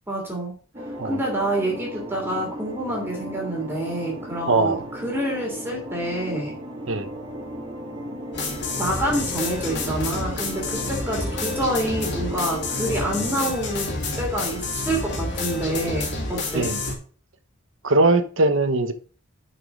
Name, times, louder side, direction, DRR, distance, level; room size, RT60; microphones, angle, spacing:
voice 1, 0.1-0.5 1.1-6.5 8.8-16.7, right 1 dB, 10° right, 3.0 m, -27 dB
sound 1, 0.7-13.5, equal, 25° right, 2.9 m, -36 dB
voice 2, 4.5-4.8 6.9-7.1 16.5-16.8 17.8-18.9, right 2 dB, 75° right, 1.0 m, -20 dB
sound 2, 8.3-16.9, left 2 dB, 60° left, 2.3 m, -29 dB
6.5 x 6.1 x 6.1 m
head